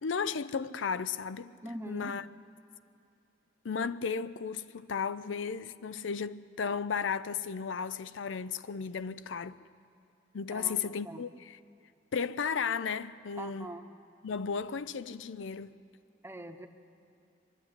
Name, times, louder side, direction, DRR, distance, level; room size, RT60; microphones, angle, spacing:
voice 1, 0.0-1.5 1.9-2.2 3.6-9.6 10.3-11.6 12.1-13.7 14.2-15.8, left 6 dB, 85° left, 0.5 m, -34 dB
voice 2, 1.6-2.1 10.5-11.2 13.4-13.8 16.2-16.7, right 1 dB, 15° right, 0.9 m, -43 dB
24.0 x 11.5 x 9.8 m
head